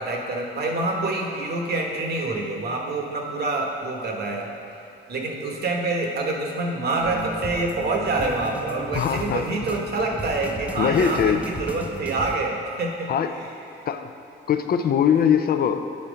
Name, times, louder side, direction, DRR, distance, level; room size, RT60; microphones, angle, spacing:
voice 1, 0.0-4.5 5.1-13.1, right 2 dB, 55° right, 1 dB, 1.1 m, -26 dB
sound 1, 7.0-12.4, right 1 dB, 5° right, 0.6 m, -35 dB
voice 2, 8.9-9.4 10.8-11.4 13.1-13.3 13.9-14.1 14.5-15.9, left 8 dB, 50° left, 8 dB, 0.4 m, -21 dB
8.4 x 4.3 x 5.1 m, 2.8 s
cardioid pair, 90°, 20 cm